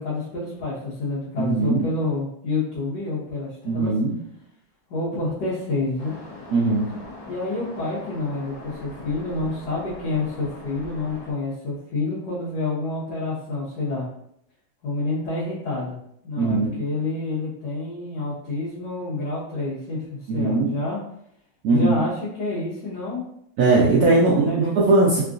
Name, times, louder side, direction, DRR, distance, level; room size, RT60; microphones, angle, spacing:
voice 1, 0.0-3.9 4.9-6.1 7.3-14.1 14.8-16.0 16.2-21.0 21.7-23.2 23.9-24.8, left 2 dB, 65° left, -10 dB, 1.5 m, -28 dB
voice 2, 1.4-1.8 3.7-4.1 6.5-6.8 16.4-16.8 20.3-20.7 21.6-21.9 23.6-25.2, right 3 dB, 70° right, -5 dB, 0.9 m, -19 dB
Waves surf, 6.0-11.3, left 2 dB, 50° left, 1.1 m, -41 dB
3.7 x 2.3 x 2.5 m, 0.72 s
omnidirectional pair, 2.1 m